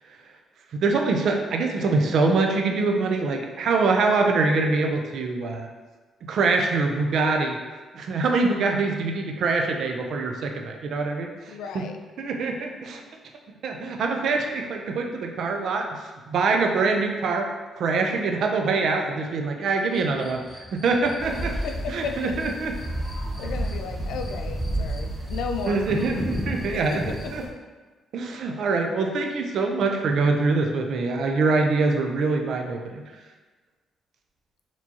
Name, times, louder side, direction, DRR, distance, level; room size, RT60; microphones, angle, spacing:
voice 1, 0.7-5.7 6.3-7.6 7.9-11.8 12.2-13.0 13.6-15.9 16.3-17.5 17.8-20.4 20.7-21.5 21.9-22.0 22.4-22.7 25.6-27.0 27.3-27.4 28.1-33.0, right 3 dB, 65° right, 3 dB, 0.5 m, -24 dB
voice 2, 11.5-12.0 21.6-22.5 23.4-26.2 26.7-27.0, left 5 dB, 85° left, 5 dB, 0.3 m, -34 dB
sound 1, 19.9-27.4, left 1 dB, 10° left, 0.9 m, -37 dB
sound 2, 21.2-27.5, right 1 dB, 35° right, 0.8 m, -32 dB
4.3 x 2.9 x 2.7 m, 1.3 s
cardioid pair, 90°, 0 cm